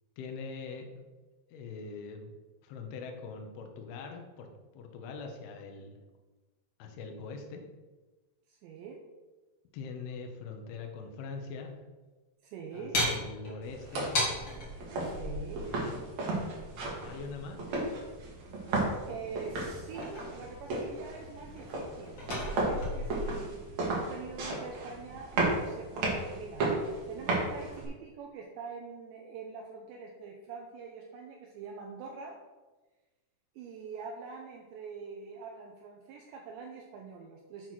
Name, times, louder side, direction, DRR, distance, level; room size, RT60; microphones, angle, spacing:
voice 1, 0.2-1.1 1.5-2.3 2.6-6.0 6.8-7.6 9.7-11.7 12.7-14.1 15.6-16.0 17.0-17.7, left 4 dB, 75° left, 4 dB, 2.4 m, -42 dB
voice 2, 8.5-9.1 12.4-13.0 15.0-15.7 18.7-26.7 27.1-32.4 33.6-37.7, right 5 dB, 80° right, 0 dB, 2.7 m, -44 dB
sound 1, 12.9-14.7 16.5-17.6 19.6-20.8 21.1-23.3, left 1 dB, 55° left, 1.2 m, -35 dB
sound 2, 13.6-27.8, right 2 dB, 60° right, 1.9 m, -34 dB
8.4 x 4.7 x 6.0 m, 1.2 s
omnidirectional pair, 5.8 m